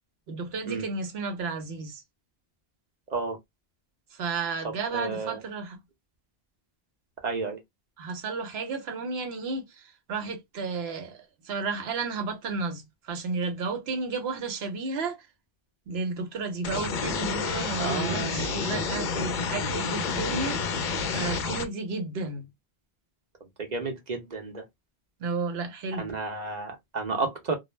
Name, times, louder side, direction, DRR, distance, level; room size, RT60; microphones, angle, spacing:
voice 1, 0.3-2.0 4.1-5.8 8.0-15.3 15.9-20.6 21.1-22.5 25.2-26.2, right 4 dB, 80° right, 1.0 m, -32 dB
voice 2, 4.6-5.4 7.2-7.6 17.8-18.8 23.6-24.6 26.0-27.5, right 4 dB, 50° right, 0.7 m, -32 dB
sound 1, 16.6-21.6, left 5 dB, 60° left, 0.6 m, -29 dB
2.2 x 2.0 x 3.0 m
omnidirectional pair, 1.0 m